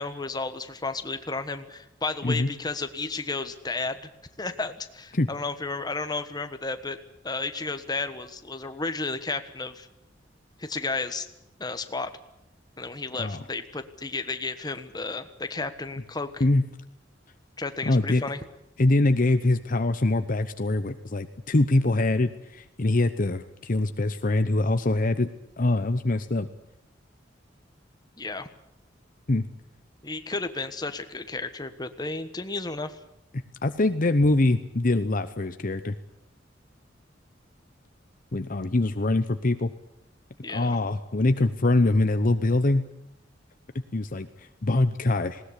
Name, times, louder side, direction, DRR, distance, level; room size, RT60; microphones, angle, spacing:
voice 1, 0.0-4.0 4.4-7.0 7.2-9.9 10.6-11.3 11.6-12.1 12.8-16.4 17.6-18.4 28.2-28.5 30.0-33.0 40.4-40.8, left 3 dB, 20° left, 9 dB, 1.4 m, -33 dB
voice 2, 17.8-18.2 18.8-25.3 25.6-26.5 29.3-29.5 33.6-36.0 38.3-39.7 40.5-42.8 43.9-45.4, left 2 dB, 45° left, 10 dB, 0.8 m, -23 dB
20.0 x 18.0 x 9.9 m, 0.84 s
head